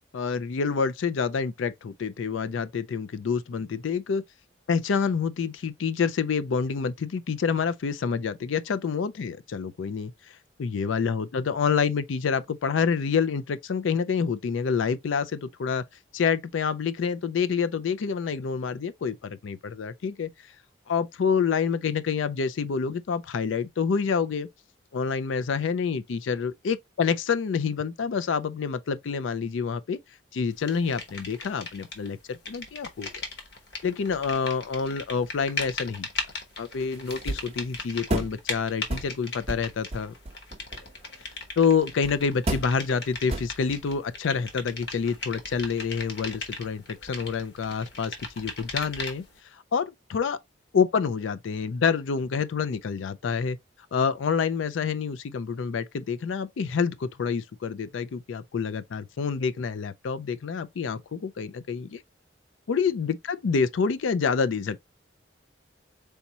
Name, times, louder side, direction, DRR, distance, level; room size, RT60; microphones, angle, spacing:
voice 1, 0.1-4.2 4.7-15.8 16.1-20.3 20.9-24.5 24.9-30.0 30.3-33.2 33.8-36.1 36.6-40.1 41.6-49.2 49.5-50.4 50.7-53.6 53.9-62.0 62.7-64.8, left 6 dB, 90° left, 0.4 m, -27 dB
sound 1, 30.7-32.1 32.3-49.4, left 3 dB, 60° left, 1.1 m, -38 dB
sound 2, 36.6-38.4 38.9-39.1 39.5-41.0 41.7-41.8 42.0-42.2 42.5-42.8 43.3-43.8, right 2 dB, 35° right, 0.5 m, -32 dB
4.1 x 3.4 x 2.8 m
head